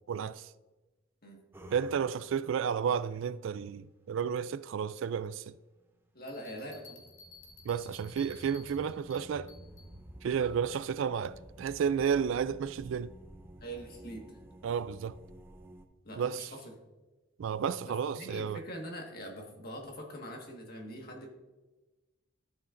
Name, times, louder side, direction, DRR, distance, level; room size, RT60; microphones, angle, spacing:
voice 1, 0.1-0.5 1.7-5.5 7.7-9.5 10.2-13.1 14.6-15.2 16.2-16.5 17.4-18.6, right 7 dB, 65° right, 0.3 m, -32 dB
sound 1, 1.5-2.7 6.4-15.9, right 1 dB, 10° right, 0.6 m, -52 dB
voice 2, 6.1-7.0 13.6-14.4 16.0-16.6 17.8-21.3, equal, 45° left, 1.7 m, -43 dB
Bell, 6.3-9.9, left 3 dB, 70° left, 1.6 m, -55 dB
13.0 x 7.2 x 2.6 m
head